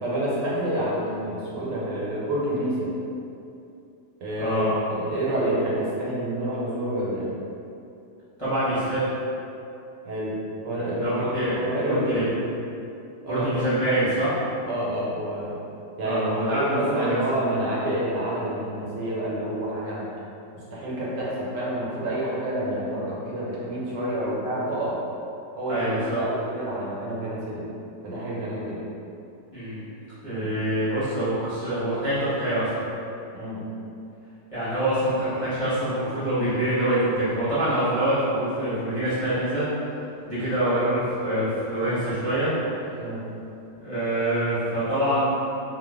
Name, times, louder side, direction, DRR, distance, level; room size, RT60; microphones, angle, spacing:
voice 1, 0.0-2.9 4.2-4.6 4.9-7.3 10.0-10.3 10.6-11.1 11.5-12.2 13.2-13.5 14.6-15.6 16.0-16.2 16.5-20.1 20.5-25.0 25.6-25.9 26.1-27.6 28.0-28.8 30.3-30.5 33.3-33.6 43.0-43.2, right 1 dB, 80° right, -7 dB, 1.4 m, -28 dB
voice 2, 4.4-4.7 8.4-9.1 10.9-12.3 13.3-14.3 16.0-17.2 25.7-26.2 29.5-29.8 30.2-32.9 34.5-39.6 40.3-42.5 43.8-45.3, right 1 dB, 25° left, -15 dB, 0.7 m, -25 dB
2.9 x 2.2 x 3.5 m, 2.7 s
omnidirectional pair, 1.9 m